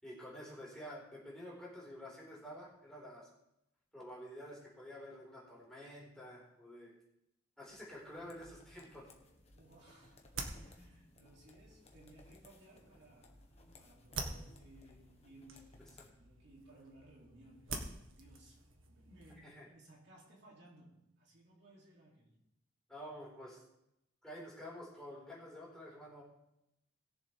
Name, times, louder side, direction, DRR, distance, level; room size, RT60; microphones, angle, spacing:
voice 1, 0.0-3.3 3.9-6.9 7.6-9.1 19.4-19.7 22.9-23.6 24.2-26.2, equal, 5° left, -5 dB, 4.1 m, -49 dB
sound 1, 7.7-16.1, left 2 dB, 35° left, 1.3 m, -62 dB
sound 2, 9.2-19.5, right 3 dB, 85° right, 1.6 m, -49 dB
voice 2, 9.5-13.5 13.7-22.3, right 1 dB, 60° right, -3 dB, 2.8 m, -61 dB
20.5 x 7.2 x 3.5 m, 0.84 s
head